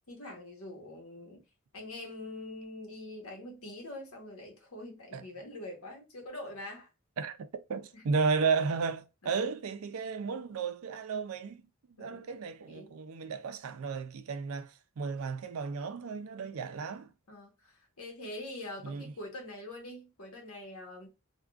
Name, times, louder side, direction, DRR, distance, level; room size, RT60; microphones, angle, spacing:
voice 1, 0.1-1.4 1.7-6.9 7.9-8.0 9.2-9.5 12.0-12.2 12.7-12.9 17.3-21.1, left 1 dB, 75° left, 1.1 m, -44 dB
voice 2, 7.2-11.7 12.0-17.1 18.8-19.1, right 5 dB, 70° right, 0.4 m, -33 dB
3.5 x 2.3 x 2.3 m
head